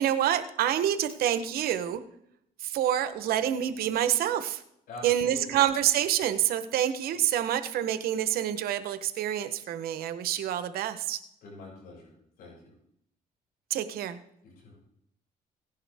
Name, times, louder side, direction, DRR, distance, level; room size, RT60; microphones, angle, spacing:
voice 1, 0.0-2.0 2.6-4.6 5.0-11.2 13.7-14.2, right 11 dB, 85° right, 11 dB, 1.0 m, -27 dB
voice 2, 4.9-5.6 11.4-12.1 12.4-12.7 14.4-14.8, left 2 dB, 80° left, -3 dB, 6.4 m, -44 dB
17.0 x 10.5 x 3.5 m, 0.75 s
cardioid pair, 90°, 15 cm